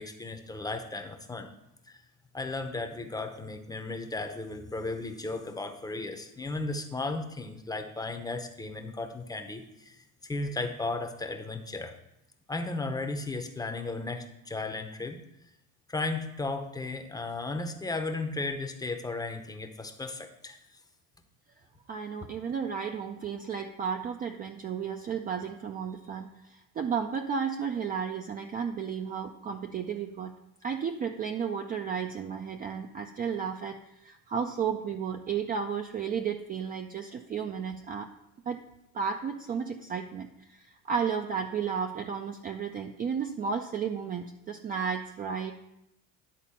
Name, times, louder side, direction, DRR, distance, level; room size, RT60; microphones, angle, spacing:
voice 1, 0.0-1.5 1.9-2.0 2.3-11.9 12.5-15.2 15.9-20.6, left 3 dB, 10° left, 6 dB, 0.7 m, -35 dB
voice 2, 21.9-30.3 30.6-38.1 38.5-38.6 38.9-45.5, right 6 dB, 25° right, 5 dB, 0.4 m, -33 dB
10.5 x 4.0 x 5.5 m, 0.84 s
cardioid pair, 120°, 38 cm